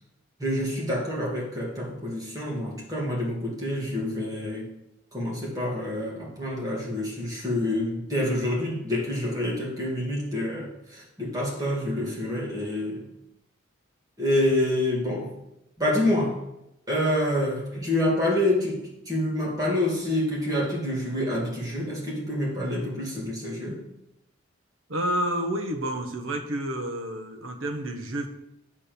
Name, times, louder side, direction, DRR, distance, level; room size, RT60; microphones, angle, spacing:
voice 1, 0.4-4.7 5.1-13.0 14.2-15.3 15.8-16.4 16.9-23.8, left 1 dB, 15° right, -4 dB, 2.3 m, -27 dB
voice 2, 24.9-28.3, right 1 dB, 70° right, 5 dB, 1.1 m, -29 dB
8.5 x 4.3 x 6.9 m, 0.86 s
head